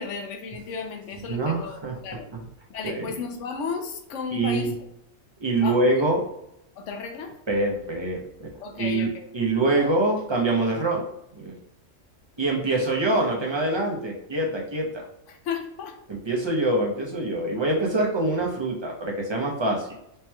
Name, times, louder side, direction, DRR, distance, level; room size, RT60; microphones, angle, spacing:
voice 1, 0.0-2.3 2.7-4.7 5.6-5.8 6.8-7.3 8.6-9.3 9.8-9.9 15.3-16.0, left 5 dB, 75° left, 5 dB, 1.0 m, -34 dB
voice 2, 1.3-2.0 2.3-2.5 2.8-3.1 4.3-4.7 5.4-6.2 7.5-8.5 8.8-11.0 11.3-11.5 12.4-15.0 16.1-19.9, right 2 dB, 30° right, -1 dB, 0.6 m, -25 dB
4.3 x 2.9 x 2.2 m, 0.77 s
omnidirectional pair, 1.3 m